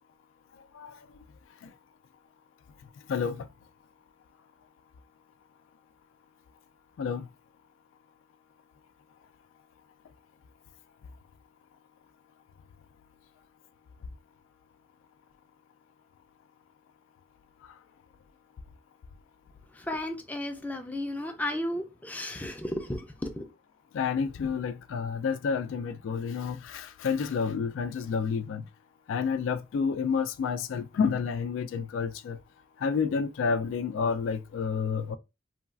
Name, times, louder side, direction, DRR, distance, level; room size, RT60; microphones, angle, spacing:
voice 1, 3.1-3.5 7.0-7.3 23.9-28.6 29.1-32.4 32.8-35.2, left 6 dB, 80° left, 0.3 m, -29 dB
voice 2, 19.7-23.5, left 1 dB, 10° left, 0.4 m, -34 dB
3.1 x 2.3 x 2.4 m
head